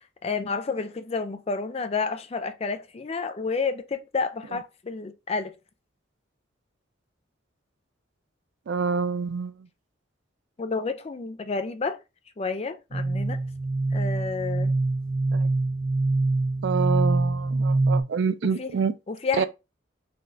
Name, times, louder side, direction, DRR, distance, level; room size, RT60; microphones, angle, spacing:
voice 1, 0.2-5.5 10.6-12.0 12.4-13.4 13.9-14.7 18.4-18.7 19.1-19.4, left 4 dB, 30° left, 0.4 m, -30 dB
voice 2, 8.7-9.7 15.3-15.5 16.6-18.9 19.4-19.5, right 5 dB, 60° right, 0.3 m, -27 dB
sound 1, 12.9-18.0, right 2 dB, 85° right, 1.2 m, -24 dB
4.2 x 3.3 x 2.6 m
head